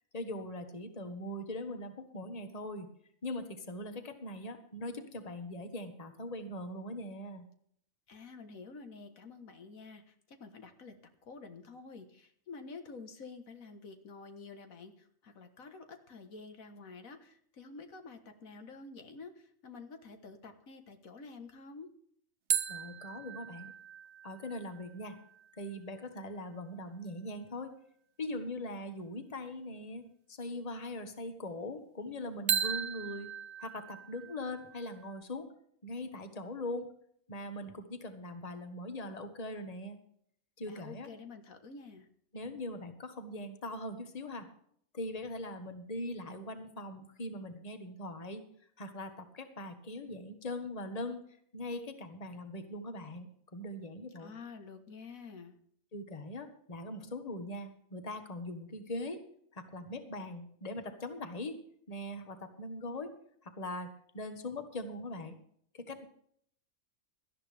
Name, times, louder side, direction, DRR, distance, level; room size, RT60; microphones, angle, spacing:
voice 1, 0.1-2.9 3.2-7.5 22.7-23.7 24.2-25.2 25.5-27.7 28.2-33.3 33.6-35.5 35.8-36.9 37.3-40.0 40.6-41.1 42.3-44.5 44.9-48.4 48.8-51.2 51.5-54.3 55.9-59.2 59.5-61.6 61.9-63.1 63.4-65.4 65.7-66.0, left 1 dB, 30° left, 7 dB, 1.5 m, -41 dB
voice 2, 8.1-11.0 11.2-21.9 40.7-42.1 54.2-55.6, left 4 dB, 80° left, 7 dB, 1.8 m, -49 dB
sound 1, 22.5-26.0 32.5-35.2, right 8 dB, 60° right, 1.0 m, -37 dB
18.0 x 13.0 x 3.4 m, 0.64 s
omnidirectional pair, 1.4 m